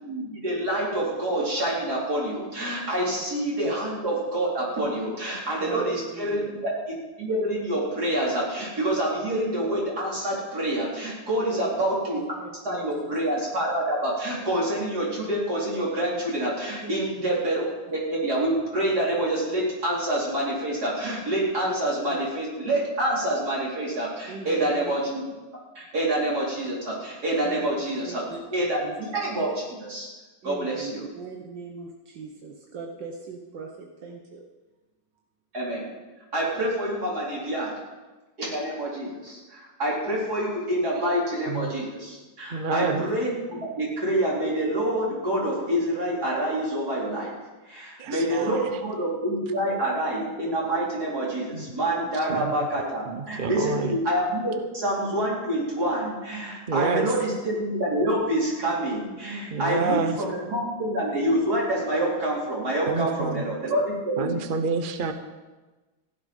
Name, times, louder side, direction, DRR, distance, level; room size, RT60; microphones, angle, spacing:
voice 1, 0.0-6.7 7.2-12.2 12.6-17.6 17.9-25.3 25.7-28.2 28.5-30.1 30.4-31.0 35.5-35.9 36.3-37.7 38.4-47.3 47.6-64.4, right 1 dB, 55° right, -5 dB, 4.8 m, -27 dB
voice 2, 5.6-6.6 11.5-11.7 12.1-12.3 12.7-13.2 16.8-17.3 21.7-21.8 22.1-22.3 24.3-24.9 27.4-27.7 28.0-28.4 28.8-29.0 30.4-34.4, right 4 dB, 80° right, 1 dB, 1.9 m, -39 dB
voice 3, 42.5-43.0 48.0-48.7 51.5-51.7 52.3-52.5 53.1-54.0 56.7-57.1 59.5-60.2 62.9-63.4 64.2-65.1, right 4 dB, 40° right, 7 dB, 0.8 m, -28 dB
15.5 x 11.0 x 5.5 m, 1.2 s
omnidirectional pair, 2.0 m